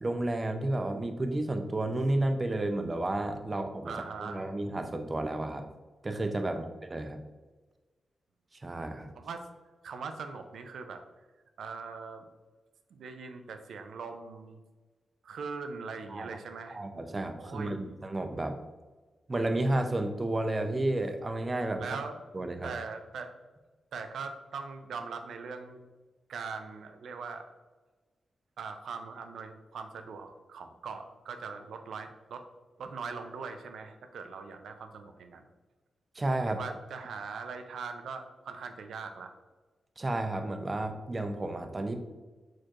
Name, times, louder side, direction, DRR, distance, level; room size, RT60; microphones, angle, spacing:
voice 1, 0.0-3.9 4.2-5.6 6.0-7.2 8.6-9.1 16.1-16.3 16.7-18.6 19.3-22.0 22.3-22.7 36.2-36.6 40.0-42.0, right 1 dB, 30° right, 6 dB, 0.5 m, -31 dB
voice 2, 3.8-4.5 6.5-6.7 9.2-9.4 9.8-11.0 11.6-12.3 12.9-14.6 15.2-16.8 17.4-18.0 21.8-22.2 22.6-23.3 23.9-25.9 26.3-27.5 28.6-32.4 32.8-35.5 36.4-39.3, right 5 dB, 85° right, 6 dB, 0.4 m, -41 dB
4.6 x 4.4 x 2.4 m, 1.3 s
cardioid pair, 75°, 0 cm